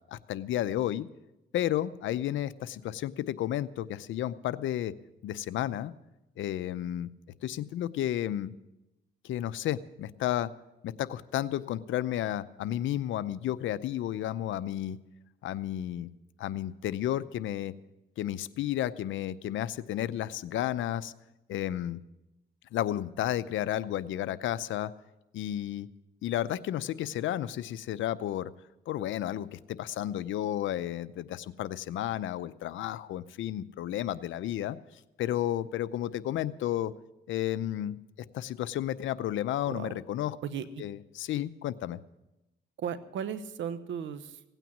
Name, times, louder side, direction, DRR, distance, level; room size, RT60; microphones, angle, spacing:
voice 1, 0.1-1.1 1.5-4.9 5.2-5.9 6.4-7.1 7.4-8.5 9.2-10.5 10.8-15.0 15.4-16.1 16.4-17.7 18.2-21.1 21.5-22.0 22.7-24.9 25.3-25.9 26.2-28.5 28.9-34.8 35.2-36.9 37.3-38.0 38.3-40.4 40.8-42.0, left 12 dB, 75° left, 15 dB, 0.7 m, -32 dB
voice 2, 40.4-40.8 42.8-44.4, right 8 dB, 75° right, 12 dB, 1.1 m, -36 dB
17.0 x 9.1 x 7.2 m, 0.93 s
cardioid pair, 90°, 20 cm